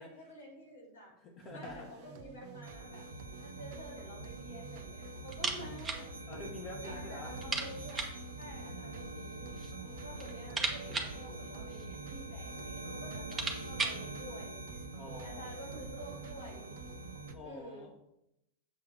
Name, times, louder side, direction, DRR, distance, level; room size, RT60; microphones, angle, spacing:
voice 1, 0.0-1.1 1.5-3.1 3.4-6.1 6.8-8.1 8.3-9.6 10.0-14.8 15.2-16.7 17.4-17.9, equal, 70° left, -2 dB, 2.9 m, -50 dB
voice 2, 1.2-1.9 6.3-7.3 9.8-10.2 14.9-15.6 17.3-18.0, left 3 dB, 30° left, -2 dB, 1.2 m, -47 dB
sound 1, 1.4-17.4, right 7 dB, 45° right, 0.6 m, -51 dB
sound 2, 2.6-17.3, right 2 dB, 80° right, 0.9 m, -45 dB
sound 3, 5.3-6.1 6.3-6.4 6.8-6.9 7.4-8.2 9.2-9.8 10.1-12.1 12.8-12.9 13.1-14.1, right 3 dB, 15° right, 1.1 m, -37 dB
7.3 x 3.5 x 6.1 m, 0.83 s
figure-of-eight pair, 90°, 0 cm